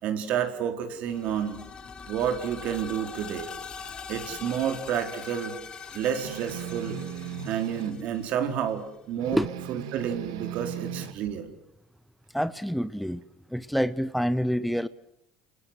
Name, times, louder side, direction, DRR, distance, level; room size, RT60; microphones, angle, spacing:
voice 1, 0.0-1.6 2.1-3.5 4.1-5.6 5.9-7.0 7.5-9.4 9.7-11.5, right 9 dB, 60° right, 6 dB, 4.4 m, -30 dB
sound 1, 1.0-8.8, left 6 dB, 35° left, 3.8 m, -42 dB
sound 2, 6.2-8.0 9.2-11.1, right 8 dB, 90° right, 2.0 m, -37 dB
voice 2, 12.3-13.2 13.5-14.9, equal, ahead, 13 dB, 1.0 m, -27 dB
30.0 x 21.5 x 8.2 m, 0.78 s
supercardioid pair, 85°, 3 cm